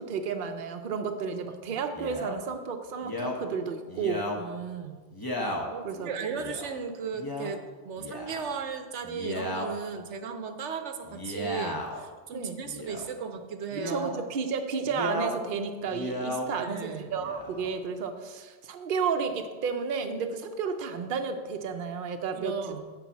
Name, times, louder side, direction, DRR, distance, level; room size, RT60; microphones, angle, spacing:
voice 1, 0.0-4.2 5.8-6.4 12.3-12.6 13.8-22.5, right 5 dB, 55° right, 6 dB, 0.8 m, -32 dB
Male speech man speaking, 2.0-2.4 3.0-3.4 3.9-4.4 5.1-5.7 6.4-6.7 7.1-7.5 8.0-8.5 9.0-9.7 11.0-12.0 12.6-13.1 13.7-14.2 14.8-15.3 15.8-16.5 17.1-17.7, left 1 dB, 20° left, 1.0 m, -34 dB
voice 2, 4.3-5.0 5.3-5.4 5.7-14.1 16.6-17.2 22.3-22.9, right 5 dB, 90° right, 7 dB, 1.1 m, -36 dB
7.2 x 5.5 x 7.2 m, 1.4 s
omnidirectional pair, 1.2 m